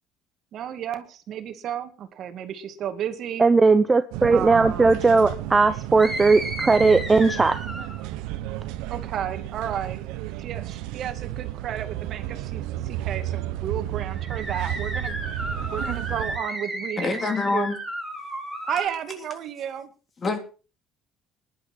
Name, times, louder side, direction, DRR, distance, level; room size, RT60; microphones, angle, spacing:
voice 1, 0.5-3.4 4.3-4.9 8.9-15.2 15.7-17.7 18.6-19.9, right 9 dB, 60° right, 2.2 m, -33 dB
voice 2, 3.4-7.6, right 3 dB, 20° right, 0.9 m, -18 dB
sound 1, 4.1-16.4, right 14 dB, 85° right, 1.2 m, -32 dB
sound 2, 6.0-8.1 14.1-18.9, right 1 dB, 5° left, 5.9 m, -33 dB
voice 3, 17.0-17.8 20.2-20.4, left 3 dB, 35° left, 3.4 m, -25 dB
20.0 x 11.0 x 4.4 m
cardioid pair, 105°, 0 cm